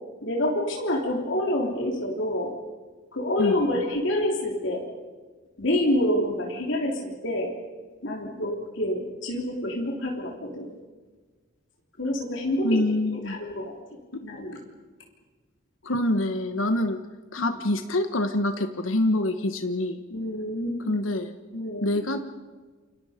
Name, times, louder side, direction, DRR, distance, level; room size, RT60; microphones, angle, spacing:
voice 1, 0.2-2.5 3.1-4.8 5.6-7.5 8.0-10.7 12.0-13.7 14.2-14.6 17.4-17.5 20.1-20.8 21.5-22.0, left 1 dB, 65° left, 0 dB, 3.4 m, -27 dB
voice 2, 12.6-13.4 14.1-14.2 15.8-17.0 17.3-20.0 20.9-21.3 21.8-22.2, left 1 dB, 80° left, 7 dB, 1.3 m, -25 dB
29.0 x 25.5 x 5.2 m, 1.4 s
head